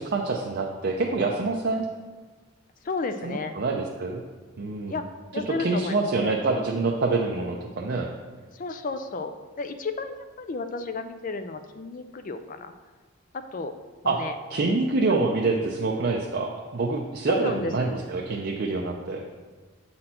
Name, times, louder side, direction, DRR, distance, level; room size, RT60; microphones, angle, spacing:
voice 1, 0.0-1.8 3.2-4.2 4.6-5.0 5.5-8.1 14.1-14.2 14.5-19.2, right 3 dB, 50° right, 0 dB, 0.5 m, -26 dB
voice 2, 2.8-3.5 4.9-5.0 5.3-6.3 8.5-12.7 13.5-13.7 14.0-14.3 15.1-15.2 17.3-18.0, left 3 dB, 40° left, 9 dB, 0.4 m, -32 dB
7.7 x 4.3 x 4.3 m, 1.4 s
head